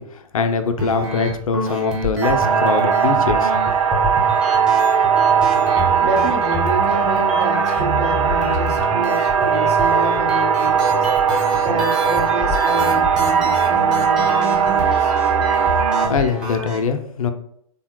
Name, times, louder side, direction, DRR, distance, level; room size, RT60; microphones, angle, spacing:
voice 1, 0.0-3.5 16.1-17.3, left 5 dB, 65° left, 8 dB, 0.4 m, -22 dB
sound 1, 0.8-16.8, equal, 5° right, 0.6 m, -27 dB
sound 2, 2.2-16.1, right 7 dB, 65° right, 0.4 m, -18 dB
voice 2, 6.0-15.2, right 1 dB, 45° right, 0 dB, 0.9 m, -29 dB
3.3 x 2.2 x 2.9 m, 0.66 s
figure-of-eight pair, 115°, 19 cm